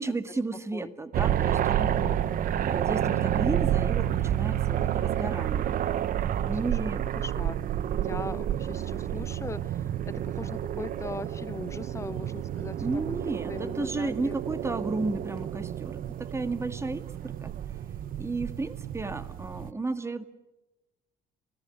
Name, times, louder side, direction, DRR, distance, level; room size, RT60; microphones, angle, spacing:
voice 1, 0.0-1.9 2.6-5.8 6.4-7.0 12.8-17.5 18.2-20.2, right 3 dB, 15° right, 1.7 m, -33 dB
sound 1, 1.1-19.7, right 11 dB, 55° right, 0.9 m, -30 dB
voice 2, 1.7-2.2 7.1-7.6 8.0-12.8 13.5-14.4, left 3 dB, 15° left, 0.8 m, -40 dB
27.5 x 18.0 x 8.7 m
cardioid pair, 110°, 17 cm